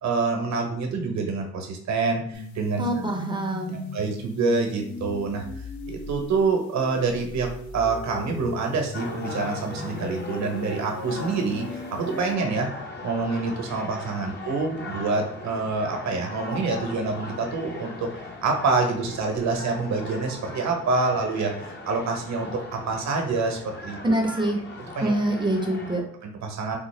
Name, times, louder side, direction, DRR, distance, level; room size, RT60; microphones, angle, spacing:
voice 1, 0.0-2.8 3.9-5.4 5.9-12.7 13.0-18.1 18.4-24.0 25.0-25.1 26.2-26.8, right 4 dB, 65° right, 3 dB, 0.9 m, -26 dB
sound 1, 2.3-12.3, left 3 dB, 70° left, 0.7 m, -38 dB
voice 2, 2.8-3.8 24.0-24.6 25.0-26.0, right 1 dB, 15° right, 1 dB, 0.6 m, -25 dB
sound 2, 8.9-26.0, left 2 dB, 35° left, 0.8 m, -39 dB
3.7 x 2.0 x 3.2 m, 0.66 s
cardioid pair, 90°, 30 cm